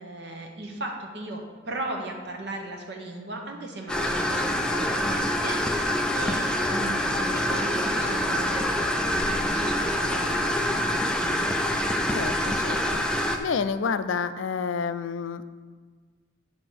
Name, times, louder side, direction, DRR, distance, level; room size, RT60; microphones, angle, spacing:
voice 1, 0.0-11.3, right 2 dB, 60° right, 1 dB, 1.1 m, -37 dB
sound 1, 3.9-13.4, left 1 dB, 5° left, 0.4 m, -26 dB
voice 2, 12.1-15.4, left 5 dB, 80° left, 13 dB, 0.4 m, -30 dB
7.6 x 4.4 x 6.5 m, 1.4 s
head